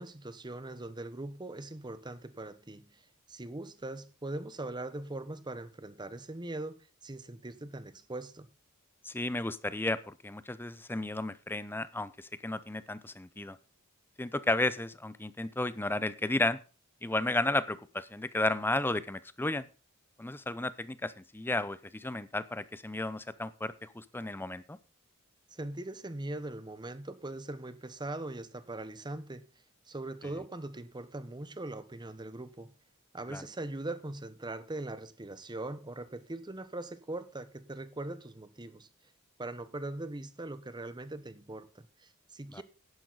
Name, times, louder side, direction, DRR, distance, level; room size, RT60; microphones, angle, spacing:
voice 1, 0.0-8.5 25.5-29.5 29.9-32.7 33.1-38.9 39.4-42.6, right 2 dB, 20° right, 0.9 m, -41 dB
voice 2, 9.0-13.6 14.2-16.6 17.0-19.7 20.2-24.8 33.3-33.4 42.5-42.6, left 2 dB, 10° left, 0.6 m, -33 dB
11.0 x 10.5 x 4.0 m
head